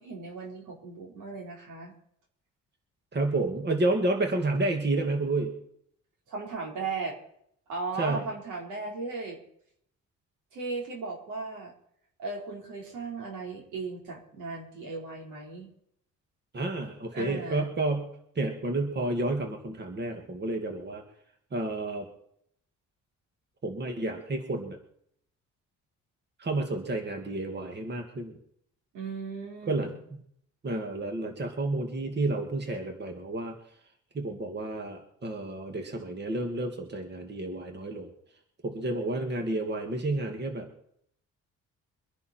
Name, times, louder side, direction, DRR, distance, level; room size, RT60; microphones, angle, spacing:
voice 1, 0.0-1.9 6.3-7.2 7.7-9.4 10.5-11.7 12.2-15.7 17.1-17.7 28.9-30.0, right 4 dB, 85° right, -1 dB, 4.6 m, -37 dB
voice 2, 3.1-5.5 8.0-8.3 16.5-21.0 21.5-22.1 23.6-24.8 26.4-28.4 29.7-29.9 30.6-33.6 34.1-38.1 38.6-40.7, right 2 dB, 35° right, 4 dB, 2.4 m, -30 dB
24.0 x 10.5 x 4.5 m, 0.69 s
cardioid pair, 90°, 30 cm